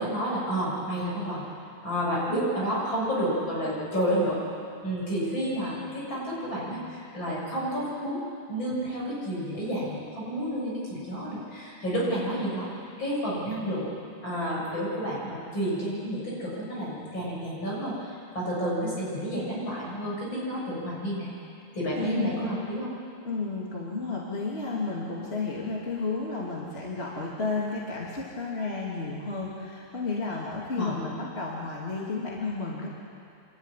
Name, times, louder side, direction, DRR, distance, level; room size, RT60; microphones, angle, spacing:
voice 1, 0.0-1.4 1.8-4.4 4.8-8.2 8.5-12.7 13.0-13.9 14.2-21.3 21.7-22.9 30.8-30.9, equal, 60° left, -6 dB, 7.7 m, -30 dB
voice 2, 22.0-22.5 23.2-32.9, left 3 dB, 30° left, -4 dB, 2.7 m, -32 dB
27.0 x 12.5 x 10.0 m, 2.6 s
omnidirectional pair, 2.4 m